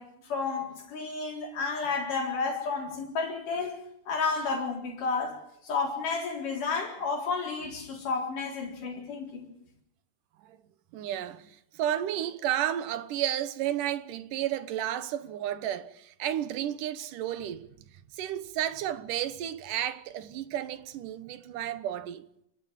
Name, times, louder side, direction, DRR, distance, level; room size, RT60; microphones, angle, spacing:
voice 1, 0.0-3.8 4.1-9.5, left 4 dB, 85° left, 5.6 m, -31 dB
voice 2, 10.9-17.7 18.1-22.3, right 11 dB, 90° right, 2.7 m, -32 dB
29.5 x 12.5 x 7.5 m
omnidirectional pair, 3.6 m